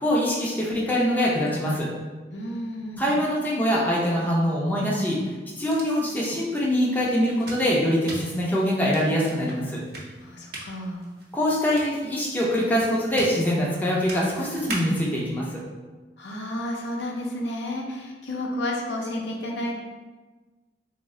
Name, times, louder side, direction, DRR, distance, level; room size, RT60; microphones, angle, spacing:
voice 1, 0.0-1.9 3.0-5.2 5.6-9.8 11.3-15.6, equal, 10° left, -5 dB, 0.5 m, -24 dB
voice 2, 2.3-3.1 10.2-11.0 16.2-19.7, left 1 dB, 80° left, -1 dB, 0.6 m, -31 dB
sound 1, 5.6-15.2, right 2 dB, 55° right, 0.7 m, -42 dB
3.1 x 2.1 x 3.6 m, 1.3 s
head